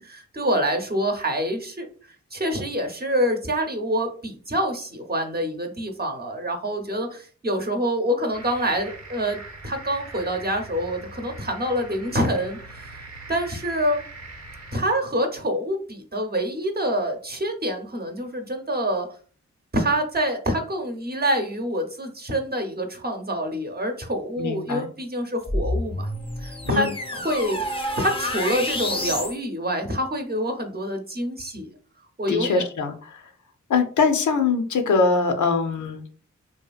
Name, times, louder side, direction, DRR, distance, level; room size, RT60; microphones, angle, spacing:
voice 1, 0.0-1.9 2.3-12.9 13.3-14.0 14.7-19.1 19.7-26.1 26.4-27.6 28.0-31.7 32.2-32.6, equal, 35° right, 4 dB, 0.7 m, -26 dB
sound 1, 8.3-14.8, right 2 dB, 65° right, 0.7 m, -42 dB
voice 2, 24.4-24.9 26.7-26.9 32.3-33.2 33.7-36.1, left 4 dB, 80° left, 7 dB, 0.5 m, -22 dB
sound 2, 25.4-29.4, left 1 dB, 20° left, 0.6 m, -29 dB
2.7 x 2.3 x 2.4 m, 0.42 s
cardioid pair, 40°, 30 cm